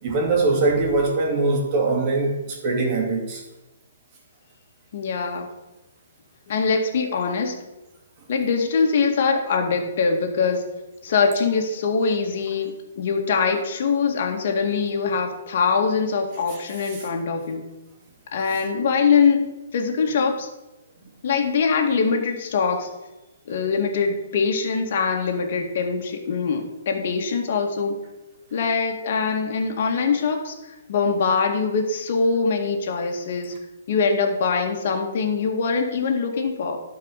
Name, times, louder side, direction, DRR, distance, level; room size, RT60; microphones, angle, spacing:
voice 1, 0.0-3.4 16.5-17.1, right 3 dB, 35° right, -1 dB, 2.8 m, -22 dB
voice 2, 4.9-5.5 6.5-7.6 8.3-10.7 11.0-17.7 18.3-20.5 21.2-22.9 23.5-28.0 28.5-30.5 30.9-33.5 33.9-36.8, left 5 dB, 55° left, 3 dB, 1.9 m, -23 dB
11.5 x 4.9 x 6.6 m, 1.0 s
hypercardioid pair, 140°, 0 cm